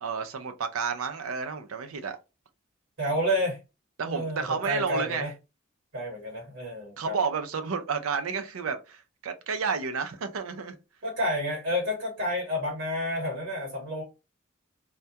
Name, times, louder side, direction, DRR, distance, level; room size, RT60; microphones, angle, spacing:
voice 1, 0.0-2.2 4.0-5.3 7.0-10.7, right 5 dB, 90° right, 0.5 m, -31 dB
voice 2, 3.0-3.6 4.1-5.3 5.9-7.2 11.0-14.0, equal, 60° right, 1.1 m, -30 dB
2.2 x 2.2 x 2.7 m
head